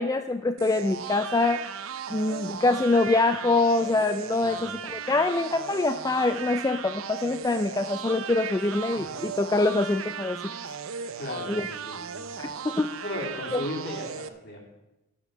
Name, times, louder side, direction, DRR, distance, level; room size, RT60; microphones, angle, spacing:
voice 1, 0.0-1.6 2.1-10.4 11.5-11.7 12.6-12.9 13.5-13.6, left 2 dB, 15° left, 8 dB, 0.3 m, -25 dB
sound 1, 0.6-14.3, right 7 dB, 75° right, 0.7 m, -37 dB
voice 2, 4.4-4.7 8.6-8.7 8.9-9.1 11.2-12.3 13.0-14.7, left 1 dB, 50° left, 0 dB, 2.9 m, -36 dB
12.0 x 7.4 x 6.6 m, 0.96 s
head